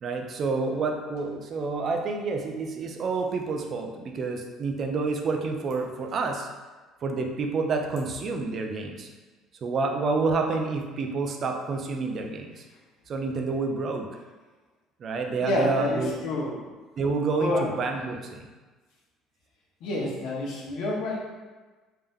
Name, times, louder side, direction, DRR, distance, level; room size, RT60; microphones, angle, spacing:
voice 1, 0.0-6.5 7.0-9.1 9.6-12.6 13.1-14.1 15.0-16.2 17.0-18.5, right 4 dB, 40° right, 3 dB, 0.5 m, -29 dB
voice 2, 15.4-16.5 17.4-17.7 19.8-21.2, left 1 dB, 70° left, -4 dB, 1.1 m, -28 dB
3.6 x 2.8 x 3.5 m, 1.3 s
cardioid pair, 125°, 0 cm